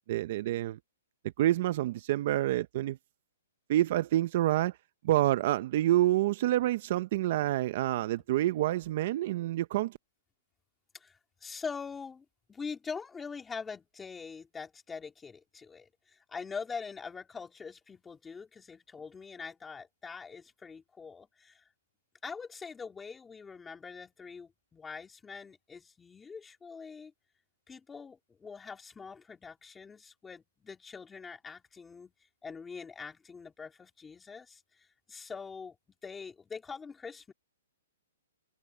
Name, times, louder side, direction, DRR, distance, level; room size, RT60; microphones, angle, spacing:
voice 1, 0.1-0.8 1.4-3.0 3.7-4.8 5.0-10.0, right 14 dB, 40° right, 0.7 m, -28 dB
voice 2, 10.9-21.6 22.2-27.1 27.7-32.1 32.4-35.8 36.0-37.3, left 5 dB, 10° left, 3.7 m, -43 dB
hypercardioid pair, 165°, 0 cm